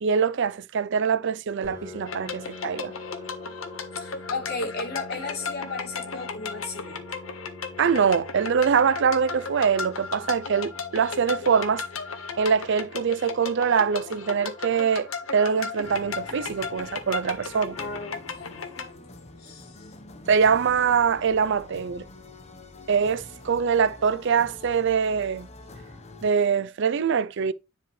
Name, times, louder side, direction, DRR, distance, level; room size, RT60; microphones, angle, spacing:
voice 1, 0.0-2.9 7.8-11.8 12.4-17.8 20.3-22.1 22.9-25.5 26.2-27.5, right 6 dB, 60° right, 0.5 m, -23 dB
Piano, 1.6-17.0, left 1 dB, 15° right, 4.2 m, -46 dB
sound 1, 2.1-18.9, left 5 dB, 85° left, 1.4 m, -36 dB
voice 2, 4.0-7.0 17.8-19.0 19.4-19.8, left 3 dB, 55° left, 3.5 m, -35 dB
sound 2, 15.8-26.3, left 2 dB, 35° left, 1.1 m, -46 dB
10.0 x 5.5 x 3.2 m
head